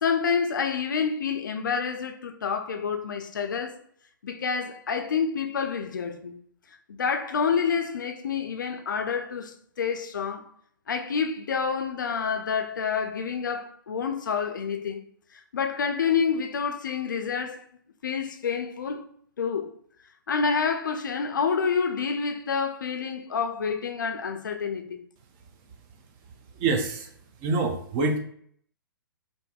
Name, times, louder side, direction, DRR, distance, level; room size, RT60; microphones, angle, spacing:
voice 1, 0.0-3.8 4.2-6.4 6.9-10.4 10.9-15.0 15.3-17.6 18.0-19.1 19.4-19.7 20.3-25.0, left 6 dB, 65° left, 0.4 m, -28 dB
voice 2, 26.5-27.1 27.4-28.2, right 3 dB, 25° right, 0.3 m, -25 dB
2.5 x 2.5 x 2.3 m
figure-of-eight pair, 120°, 11 cm